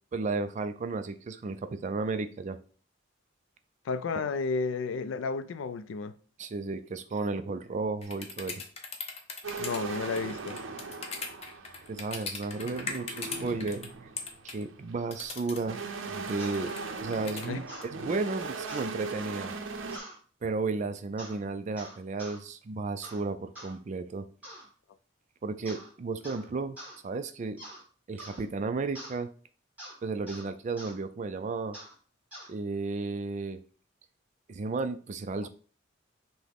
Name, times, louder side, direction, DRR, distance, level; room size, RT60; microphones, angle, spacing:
voice 1, 0.1-2.6 4.1-4.2 6.4-8.5 11.9-13.8 14.4-15.8 16.1-16.7 17.0-17.6 18.0-19.5 20.4-24.3 25.4-26.8 27.0-27.6 28.1-29.3 30.0-31.8 32.5-33.6 34.5-35.5, right 3 dB, 40° right, 0.3 m, -33 dB
voice 2, 3.8-6.1 9.6-10.6 17.5-17.6 35.4-35.5, left 4 dB, 80° left, 0.3 m, -32 dB
sound 1, 8.0-13.9 14.2-14.6 15.1-15.6 16.2-17.8, left 4 dB, 30° left, 0.6 m, -39 dB
sound 2, 9.4-20.0, right 4 dB, 90° right, 0.5 m, -39 dB
sound 3, 16.4-16.6 17.7-17.9 18.7-18.9 19.9-20.2 21.2-21.4 21.8-22.4 23.0-23.2 23.6-23.7 24.4-24.7 25.7-25.9 26.2-26.5 26.8-27.0 27.6-27.8 28.2-28.4 29.0-29.2 29.8-30.0 30.3-30.5 30.8-31.0 31.7-31.9 32.3-32.5, right 1 dB, 5° right, 2.0 m, -45 dB
5.9 x 2.1 x 3.4 m
head